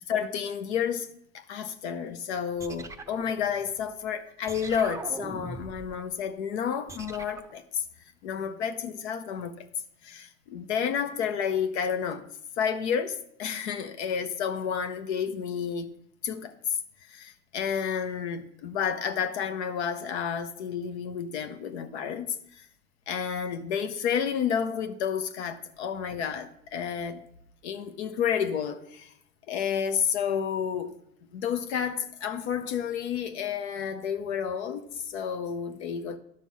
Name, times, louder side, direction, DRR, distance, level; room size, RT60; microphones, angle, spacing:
voice 1, 0.1-7.8 8.2-9.7 10.0-12.3 12.6-15.9 16.2-16.5 17.1-22.7 23.1-27.2 27.6-29.1 29.5-30.9 31.3-36.2, left 7 dB, 65° left, 0.8 m, -30 dB
sound 1, 2.6-3.9 4.5-6.0 6.9-7.6, right 3 dB, 10° right, 0.7 m, -41 dB
11.5 x 5.3 x 6.0 m
figure-of-eight pair, 80°, 36 cm